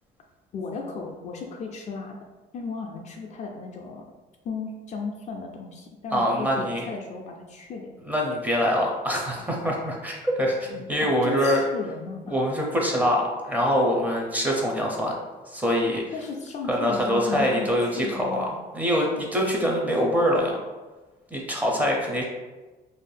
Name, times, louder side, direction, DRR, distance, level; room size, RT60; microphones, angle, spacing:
voice 1, 0.5-2.2 2.5-4.0 4.4-7.9 11.0-12.4 16.1-18.5, left 4 dB, 45° left, 1 dB, 0.4 m, -35 dB
voice 2, 6.1-6.8 8.1-11.6 12.3-15.1 15.5-16.0 16.7-20.6 21.3-22.2, equal, 10° right, -1 dB, 0.6 m, -24 dB
2.5 x 2.1 x 3.3 m, 1.2 s
cardioid pair, 110°, 17 cm